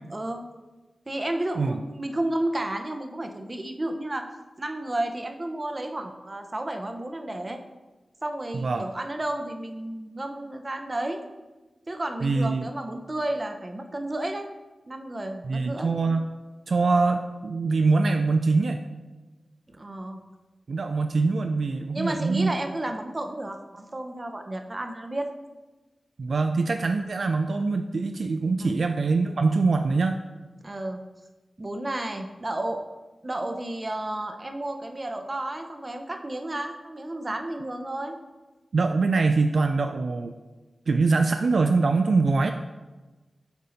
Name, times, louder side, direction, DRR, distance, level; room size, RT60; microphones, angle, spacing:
voice 1, 0.1-0.4 1.1-4.3 4.6-7.6 8.2-11.2 11.9-14.5 14.9-15.9 19.7-20.2 21.9-25.3 28.6-28.7 30.6-31.0 31.6-32.8 33.2-38.2, right 1 dB, 35° right, 5 dB, 0.7 m, -32 dB
voice 2, 12.2-12.7 15.4-16.3 16.7-18.8 20.7-22.5 26.2-30.2 38.7-40.3 40.9-42.5, right 3 dB, 75° right, 6 dB, 0.3 m, -23 dB
8.0 x 2.7 x 5.0 m, 1.2 s
cardioid pair, 50°, 0 cm